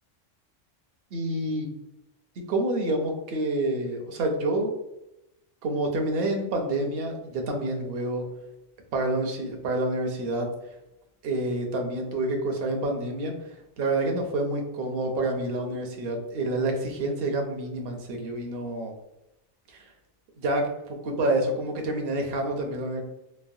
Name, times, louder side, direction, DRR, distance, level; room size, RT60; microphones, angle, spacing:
voice 1, 1.1-1.7 2.5-4.7 5.6-8.3 8.9-10.5 11.2-13.3 13.8-18.9 19.7-19.8 20.4-20.7 21.0-23.0, right 2 dB, 60° right, 2 dB, 0.7 m, -28 dB
3.1 x 2.0 x 2.5 m, 0.92 s
omnidirectional pair, 1.3 m